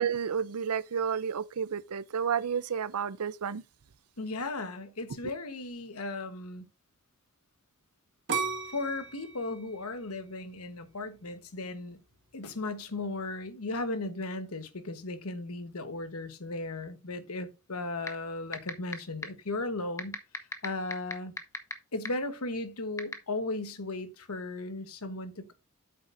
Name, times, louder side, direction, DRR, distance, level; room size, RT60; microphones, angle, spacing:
voice 1, 0.0-3.6, right 7 dB, 75° right, 0.6 m, -31 dB
voice 2, 4.2-6.6 8.7-12.0 12.3-20.2 20.6-21.3 21.9-25.5, left 2 dB, 70° left, 1.3 m, -36 dB
sound 1, 8.3-11.2 11.7-12.2, right 5 dB, 55° right, 1.7 m, -36 dB
sound 2, 18.1-18.2 18.5-18.9 19.2-19.3 20.0-21.7 22.1-22.2 23.0-23.1, left 3 dB, 15° left, 0.9 m, -32 dB
8.6 x 7.5 x 2.6 m
head